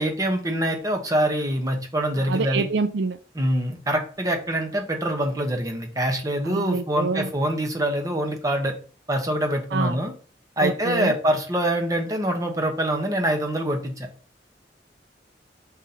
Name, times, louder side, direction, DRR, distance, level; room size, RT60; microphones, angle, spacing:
voice 1, 0.0-2.7 3.3-8.7 9.1-10.1 10.6-14.1, right 1 dB, 20° right, 3 dB, 1.0 m, -25 dB
voice 2, 2.2-3.2 6.4-7.3 9.7-10.0 10.6-11.2, right 4 dB, 70° right, 11 dB, 0.4 m, -26 dB
6.1 x 4.0 x 4.2 m, 0.40 s
head